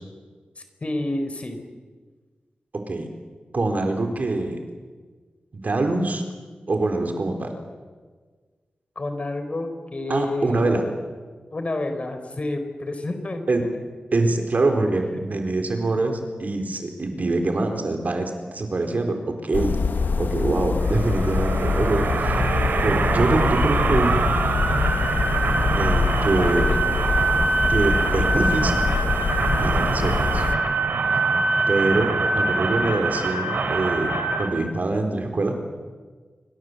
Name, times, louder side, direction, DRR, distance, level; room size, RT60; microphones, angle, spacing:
voice 1, 0.6-1.6 9.0-10.7 11.5-13.5 26.4-27.2, left 2 dB, 40° left, 7 dB, 4.4 m, -29 dB
voice 2, 3.5-4.6 5.5-6.2 6.7-7.5 10.1-10.8 13.5-13.6 14.1-19.8 20.2-22.3 22.8-24.3 25.8-26.7 27.7-28.8 29.6-30.4 31.7-35.6, right 2 dB, 55° right, 5 dB, 4.3 m, -24 dB
sound 1, 19.5-30.6, left 4 dB, 75° left, 1.2 m, -25 dB
sound 2, 20.8-34.5, right 3 dB, 85° right, 3.1 m, -23 dB
27.0 x 24.5 x 8.1 m, 1.5 s
wide cardioid pair, 95°, 3 cm